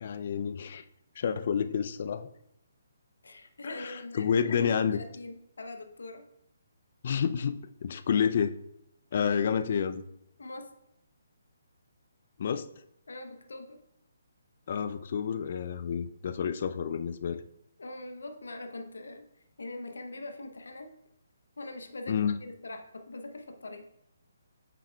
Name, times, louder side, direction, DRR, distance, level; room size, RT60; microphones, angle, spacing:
voice 1, 0.0-0.8 1.2-2.3 3.6-5.0 7.0-8.6 9.1-10.0 12.4-12.7 14.7-17.4 22.1-22.4, left 7 dB, 45° left, 11 dB, 0.4 m, -29 dB
voice 2, 3.2-6.2 10.4-10.7 13.1-13.8 17.8-19.2 19.6-20.9 21.6-23.8, left 2 dB, 70° left, 6 dB, 0.8 m, -42 dB
8.1 x 6.0 x 2.3 m, 0.78 s
figure-of-eight pair, 140°, 0 cm